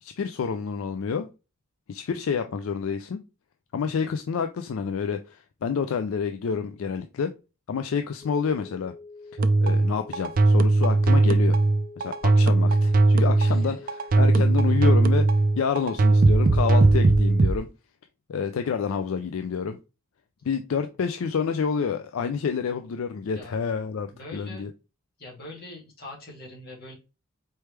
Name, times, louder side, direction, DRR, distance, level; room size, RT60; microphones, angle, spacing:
voice 1, 0.0-1.3 1.9-3.2 3.7-7.3 7.7-8.9 9.6-11.6 12.0-13.8 14.2-15.3 15.6-17.7 18.3-19.8 20.4-24.7, left 6 dB, 70° left, 8 dB, 0.4 m, -28 dB
sound 1, 8.2-17.5, left 3 dB, 10° left, 1.6 m, -45 dB
sound 2, 9.4-17.6, right 2 dB, 40° right, 0.3 m, -19 dB
voice 2, 24.1-24.7 25.2-26.9, left 2 dB, 45° left, -2 dB, 1.9 m, -43 dB
4.4 x 3.4 x 3.1 m, 0.29 s
head